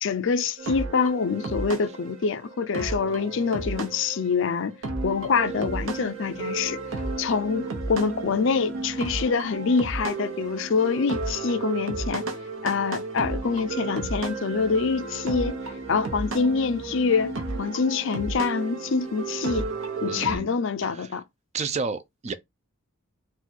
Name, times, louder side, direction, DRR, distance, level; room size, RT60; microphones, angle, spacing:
voice 1, 0.0-4.8 5.0-6.8 7.2-12.2 12.6-15.6 15.9-19.7 20.0-21.2, left 5 dB, 60° left, 0.4 m, -25 dB
sound 1, 0.6-20.4, right 3 dB, 70° right, 1.0 m, -33 dB
voice 2, 20.1-20.5 20.8-21.2 21.5-22.3, right 5 dB, 30° right, 0.4 m, -31 dB
4.0 x 2.3 x 4.4 m
head